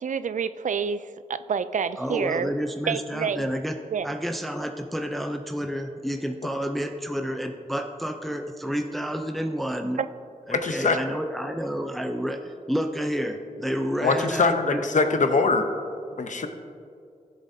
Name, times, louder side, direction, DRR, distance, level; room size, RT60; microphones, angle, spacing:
voice 1, 0.0-2.5 2.9-3.5 3.9-4.1 10.0-10.1, right 6 dB, 65° right, 14 dB, 0.4 m, -28 dB
voice 2, 2.0-3.8 4.0-10.0 10.5-14.9, equal, ahead, 4 dB, 0.5 m, -30 dB
voice 3, 10.5-11.0 14.0-15.6 16.2-16.5, left 3 dB, 65° left, 6 dB, 0.8 m, -22 dB
16.0 x 7.5 x 2.7 m, 2.4 s
wide cardioid pair, 95°, 14 cm